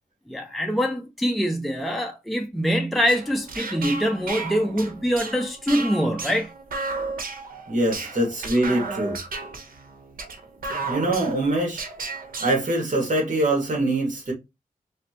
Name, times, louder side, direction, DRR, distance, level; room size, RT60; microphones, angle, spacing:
voice 1, 0.3-6.5, equal, ahead, 0.6 m, -24 dB
sound 1, 3.0-12.5, right 3 dB, 75° right, 1.1 m, -34 dB
voice 2, 7.7-9.1 10.9-11.9 12.4-14.3, right 1 dB, 60° right, 2.4 m, -23 dB
4.2 x 3.1 x 3.0 m
wide cardioid pair, 75°, 15 cm